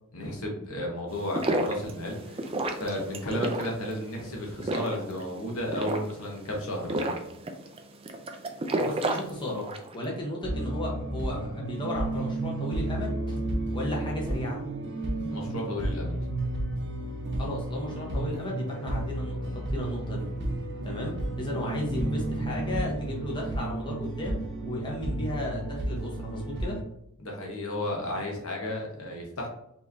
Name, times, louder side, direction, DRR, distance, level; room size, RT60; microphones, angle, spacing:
voice 1, 0.1-7.2 15.3-16.2 27.2-29.5, left 1 dB, 70° left, 0 dB, 1.1 m, -33 dB
sound 1, 1.1-9.9, right 1 dB, 25° right, 0.4 m, -32 dB
voice 2, 8.8-9.7 9.9-13.4 13.7-14.6 17.3-20.2 20.8-24.4 24.6-26.8, left 1 dB, 20° left, -3 dB, 1.0 m, -34 dB
sound 2, 10.4-26.8, right 1 dB, 55° right, 0.9 m, -32 dB
4.6 x 3.0 x 2.7 m, 0.80 s
head